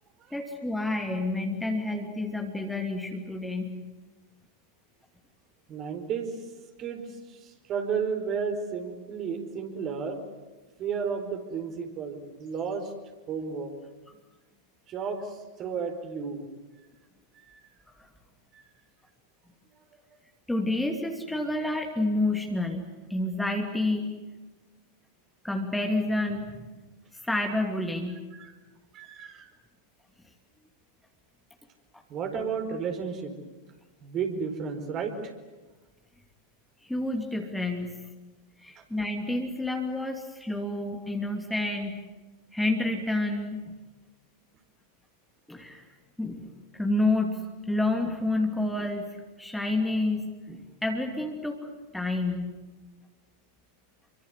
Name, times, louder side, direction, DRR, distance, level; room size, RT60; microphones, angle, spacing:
voice 1, 0.3-3.7 20.5-24.2 25.4-26.7 27.2-28.2 36.8-38.1 38.6-42.0 42.5-43.7 45.5-45.9 46.2-49.1 49.4-51.7 51.9-52.5, left 2 dB, 5° left, 3 dB, 2.8 m, -29 dB
voice 2, 5.7-6.4 6.8-10.2 10.8-12.9 13.3-13.7 14.9-16.4 17.4-17.6 18.5-18.6 28.3-28.5 28.9-29.5 32.1-33.3 34.0-35.3 38.8-38.9, right 6 dB, 30° right, 6 dB, 4.6 m, -33 dB
28.5 x 24.5 x 8.1 m, 1.2 s
figure-of-eight pair, 90°, 0 cm